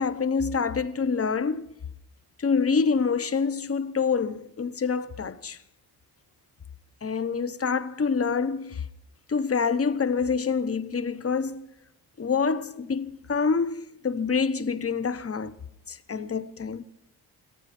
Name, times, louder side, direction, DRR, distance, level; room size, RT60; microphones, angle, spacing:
voice 1, 0.0-1.7 2.4-5.6 7.0-8.8 9.3-11.7 12.2-15.6 15.9-16.8, left 5 dB, 35° left, 1.1 m, -26 dB
22.0 x 15.0 x 4.4 m
supercardioid pair, 65°, 43 cm